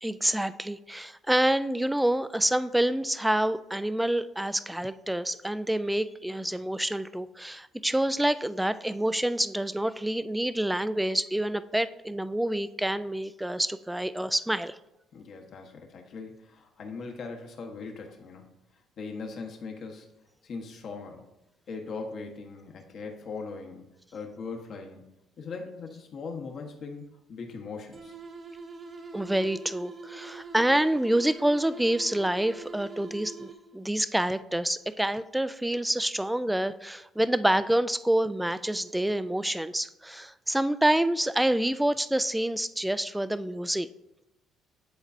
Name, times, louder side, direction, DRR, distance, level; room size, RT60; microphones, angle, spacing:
voice 1, 0.0-14.8 29.1-43.9, right 1 dB, 5° right, 14 dB, 0.3 m, -27 dB
voice 2, 15.1-18.5 19.0-20.2 20.4-21.3 21.7-23.8 24.1-25.0 25.4-28.2, left 4 dB, 60° left, 2 dB, 1.2 m, -40 dB
sound 1, 27.9-33.9, right 4 dB, 40° right, 1.1 m, -44 dB
10.0 x 4.0 x 2.7 m, 0.88 s
supercardioid pair, 80°, 0 cm